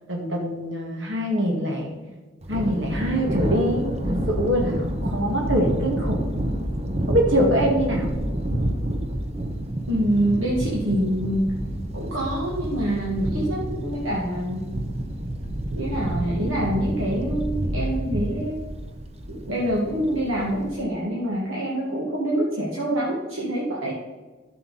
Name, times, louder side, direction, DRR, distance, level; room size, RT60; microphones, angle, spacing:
voice 1, 0.1-1.9 2.5-6.2 7.1-8.1, equal, 70° right, 0 dB, 2.0 m, -24 dB
Thunder, 2.4-20.8, right 1 dB, 30° right, 0.9 m, -29 dB
voice 2, 9.9-11.5 11.9-14.7 15.7-18.6 19.3-24.0, right 1 dB, 90° right, -5 dB, 2.2 m, -26 dB
12.0 x 7.6 x 4.2 m, 1.3 s
head